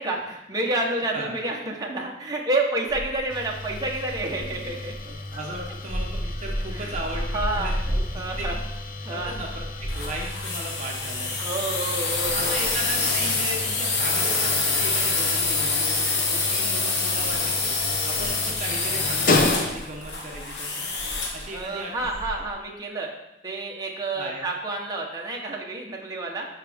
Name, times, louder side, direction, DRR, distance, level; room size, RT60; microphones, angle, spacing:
voice 1, 0.0-4.9 6.7-6.9 7.3-7.8 8.1-8.6 9.0-9.5 11.4-12.6 21.5-23.1 23.4-26.5, right 2 dB, 20° right, -1 dB, 1.1 m, -29 dB
sound 1, 2.9-14.5 14.8-16.1 16.3-22.5, equal, ahead, 2.4 m, -35 dB
sound 2, 3.3-20.1, left 2 dB, 55° left, 0.8 m, -33 dB
voice 2, 5.1-8.5 9.1-11.3 12.2-20.9 21.3-22.4 24.2-24.5, right 1 dB, 45° right, -1 dB, 1.0 m, -37 dB
sound 3, 9.9-21.5, left 3 dB, 70° left, 1.3 m, -26 dB
11.5 x 4.7 x 3.6 m, 0.89 s
head